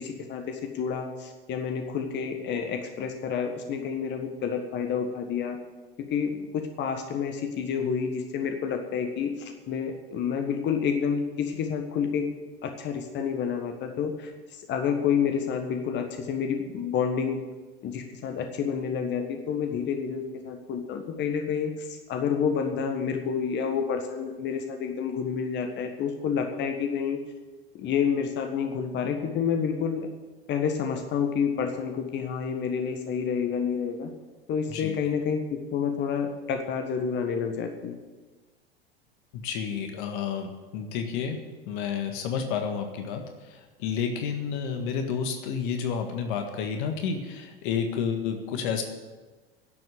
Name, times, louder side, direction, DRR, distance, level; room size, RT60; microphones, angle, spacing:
voice 1, 0.0-5.6 6.0-12.3 12.6-14.3 14.7-17.4 17.8-27.2 27.7-30.1 30.5-34.1 34.5-38.0, left 7 dB, 40° left, 5 dB, 1.6 m, -29 dB
voice 2, 39.3-41.4 41.7-48.8, left 6 dB, 60° left, 5 dB, 1.7 m, -30 dB
11.5 x 7.8 x 9.7 m, 1.2 s
figure-of-eight pair, 80°, 29 cm